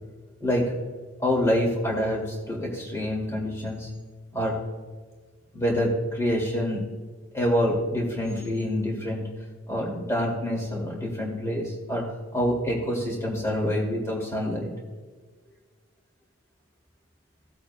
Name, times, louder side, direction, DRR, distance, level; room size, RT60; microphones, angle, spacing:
voice 1, 0.4-0.7 1.2-3.9 4.3-4.6 5.5-6.8 7.3-9.3 9.7-12.0 12.3-14.7, equal, 15° left, -2 dB, 2.3 m, -26 dB
17.5 x 8.4 x 2.2 m, 1.4 s
head